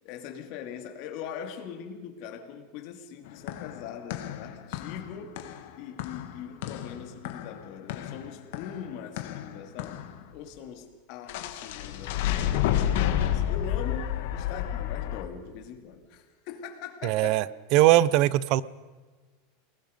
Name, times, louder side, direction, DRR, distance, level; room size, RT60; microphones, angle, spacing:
voice 1, 0.0-5.4 5.8-10.0 10.3-17.5, left 8 dB, 45° left, 5 dB, 2.6 m, -41 dB
sound 1, 3.3-10.2 11.3-15.2, left 11 dB, 60° left, 1.8 m, -31 dB
voice 2, 17.0-17.4 17.7-18.6, right 16 dB, 45° right, 20 dB, 0.6 m, -20 dB
29.0 x 20.0 x 5.3 m, 1.3 s
supercardioid pair, 165°, 0 cm